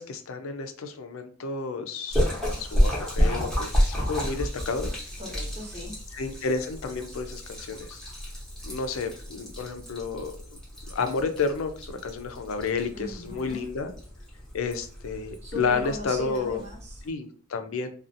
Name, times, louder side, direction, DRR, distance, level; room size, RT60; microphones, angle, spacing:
voice 1, 0.0-5.0 6.1-8.0 8.6-10.4 10.9-13.9 14.5-16.6 17.0-17.9, left 4 dB, 80° left, 7 dB, 0.4 m, -31 dB
Splash splatter, 2.1-17.1, equal, 5° left, 0.8 m, -31 dB
voice 2, 5.2-6.0 12.9-13.6 15.4-17.0, left 1 dB, 35° right, -3 dB, 1.0 m, -38 dB
2.5 x 2.3 x 2.6 m, 0.42 s
head